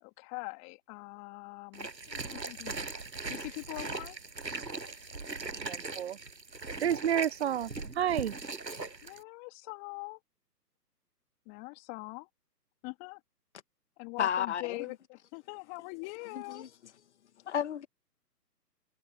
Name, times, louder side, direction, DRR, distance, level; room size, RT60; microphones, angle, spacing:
voice 1, 0.0-2.8 3.3-4.2 9.0-10.2 11.5-12.3 12.8-13.2 14.0-16.6, left 31 dB, 20° left, 2.7 m, -43 dB
sound 1, 1.7-9.2, right 3 dB, 85° right, 7.9 m, -40 dB
voice 2, 5.4-6.2 6.8-7.7 8.0-8.3, right 10 dB, 40° right, 0.9 m, -30 dB
voice 3, 14.2-14.8 16.5-16.7 17.5-17.9, left 9 dB, 45° left, 1.7 m, -31 dB
figure-of-eight pair, 140°, 50 cm